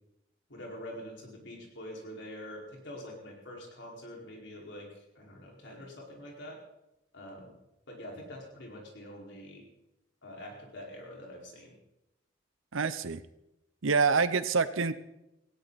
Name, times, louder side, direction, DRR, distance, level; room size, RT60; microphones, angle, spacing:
voice 1, 0.5-6.6 7.1-7.6 7.9-9.6 10.2-11.8, left 1 dB, 60° left, -1 dB, 5.0 m, -45 dB
voice 2, 12.7-13.2 13.8-14.9, right 5 dB, 80° right, 14 dB, 0.8 m, -26 dB
18.5 x 16.5 x 4.2 m, 0.89 s
head